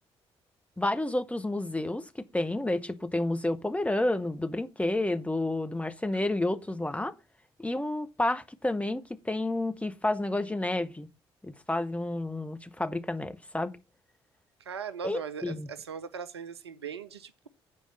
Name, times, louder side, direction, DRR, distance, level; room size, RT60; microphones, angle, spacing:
voice 1, 0.8-7.1 7.6-11.1 11.4-13.8 15.0-15.7, left 1 dB, 10° left, 1.1 m, -30 dB
voice 2, 14.6-17.5, right 6 dB, 90° right, 0.5 m, -39 dB
7.7 x 5.0 x 6.7 m
figure-of-eight pair, 40°, 13 cm